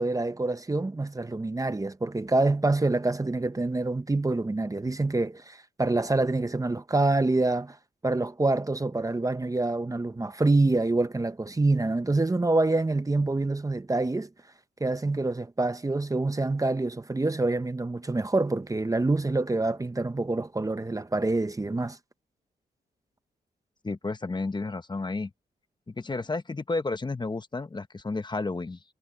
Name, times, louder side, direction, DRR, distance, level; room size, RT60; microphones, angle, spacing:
voice 1, 0.0-7.8 8.0-14.3 14.8-22.0, right 2 dB, 20° right, 1.0 m, -26 dB
voice 2, 23.8-25.3 25.9-28.8, left 3 dB, 25° left, 1.1 m, -32 dB
cardioid pair, 75°, 17 cm